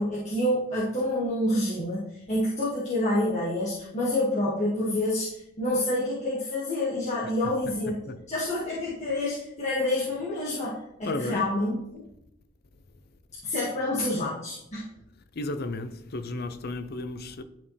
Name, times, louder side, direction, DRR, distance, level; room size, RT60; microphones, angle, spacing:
voice 1, 0.0-8.0 8.3-12.0 13.4-14.9, left 1 dB, 35° left, 2.0 m, -28 dB
voice 2, 11.0-11.5 15.3-17.4, left 2 dB, 50° left, 0.6 m, -33 dB
11.5 x 5.3 x 3.3 m
head